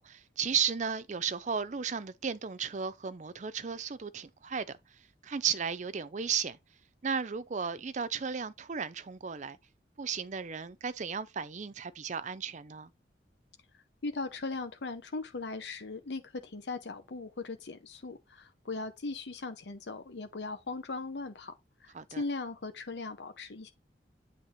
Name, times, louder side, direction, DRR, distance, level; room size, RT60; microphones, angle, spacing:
voice 1, 0.0-4.8 5.2-6.6 7.0-9.6 10.0-12.9 21.9-22.2, right 6 dB, 40° right, 0.5 m, -34 dB
voice 2, 13.7-21.5 21.8-23.7, left 3 dB, 70° left, 0.7 m, -39 dB
8.3 x 3.4 x 4.3 m
head